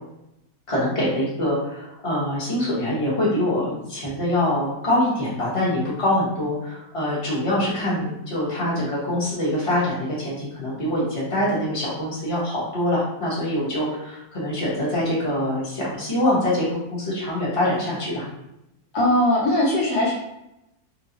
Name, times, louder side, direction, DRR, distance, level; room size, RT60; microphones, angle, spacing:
voice 1, 0.7-18.3, left 1 dB, 20° left, -7 dB, 1.2 m, -24 dB
voice 2, 18.9-20.1, left 1 dB, 75° left, -5 dB, 1.4 m, -20 dB
3.6 x 2.8 x 2.9 m, 0.87 s
omnidirectional pair, 1.7 m